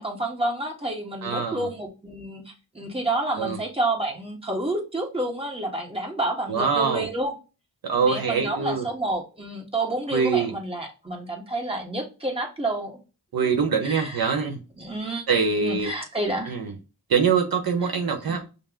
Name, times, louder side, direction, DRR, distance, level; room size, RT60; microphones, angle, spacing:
voice 1, 0.0-7.3 8.0-13.0 13.8-14.2 14.8-15.3 15.6-16.5 18.3-18.4, right 2 dB, 15° right, 1.4 m, -29 dB
voice 2, 1.2-1.7 3.4-3.6 6.5-7.0 7.8-8.8 10.1-10.5 13.3-14.6 15.3-15.9 16.5-16.7 17.1-18.4, right 5 dB, 65° right, 0.9 m, -24 dB
5.3 x 2.1 x 3.7 m
cardioid pair, 65°, 39 cm